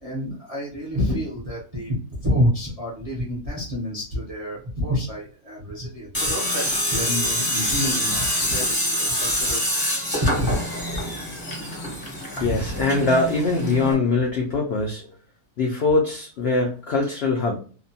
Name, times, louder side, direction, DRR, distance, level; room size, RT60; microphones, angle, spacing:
voice 1, 0.0-10.7 10.9-11.0 12.3-12.8, equal, 40° right, -4 dB, 0.5 m, -28 dB
Tools, 6.1-13.9, equal, 20° left, 0.6 m, -26 dB
voice 2, 12.4-15.1 15.6-17.6, left 3 dB, 75° left, 0 dB, 0.5 m, -22 dB
2.7 x 2.1 x 2.6 m, 0.41 s
omnidirectional pair, 1.6 m